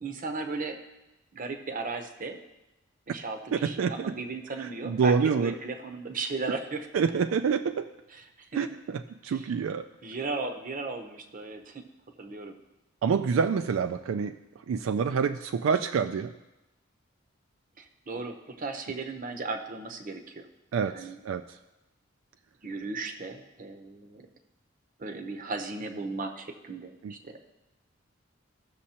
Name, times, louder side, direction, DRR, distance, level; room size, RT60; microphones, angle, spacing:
voice 1, 0.0-0.8 1.3-2.4 3.1-6.9 8.1-8.2 8.5-8.7 9.2-9.5 10.0-11.9 12.2-12.6 17.8-20.5 20.8-21.2 22.6-24.3 25.0-27.4, right 3 dB, 45° right, 6 dB, 0.7 m, -36 dB
voice 2, 3.5-3.9 4.6-5.5 6.9-7.9 8.5-9.9 13.0-14.3 14.7-16.3 20.7-21.4 27.0-27.1, right 6 dB, 75° right, 8 dB, 0.3 m, -27 dB
15.5 x 6.3 x 2.9 m, 1.0 s
head